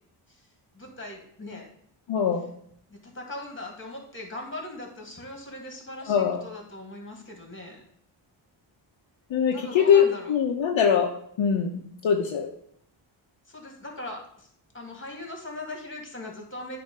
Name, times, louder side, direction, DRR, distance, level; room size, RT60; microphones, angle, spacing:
voice 1, 0.7-1.7 2.9-7.8 9.5-10.3 13.5-14.5 14.7-16.8, left 1 dB, 25° left, 1 dB, 2.3 m, -39 dB
voice 2, 2.1-2.5 6.1-6.4 9.3-11.1 11.4-12.5, left 7 dB, 70° left, 1 dB, 0.9 m, -22 dB
8.7 x 2.9 x 5.4 m, 0.66 s
cardioid pair, 70°, 47 cm